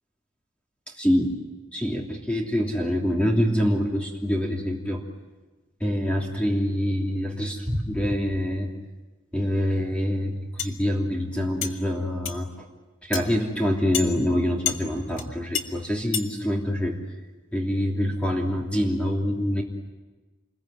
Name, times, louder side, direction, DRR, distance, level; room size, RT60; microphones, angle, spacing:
voice 1, 1.0-1.3 1.7-5.0 5.8-8.7 9.3-12.6 13.0-16.9 17.5-19.6, equal, 5° left, -1 dB, 3.1 m, -25 dB
sound 1, 10.6-10.7 11.6-11.7 12.2-12.4 13.1-13.2 13.9-14.1 14.7-14.8 15.2-15.3 15.5-15.6 16.1-16.3, left 8 dB, 65° left, 2.0 m, -28 dB
29.0 x 21.5 x 9.2 m, 1.2 s
head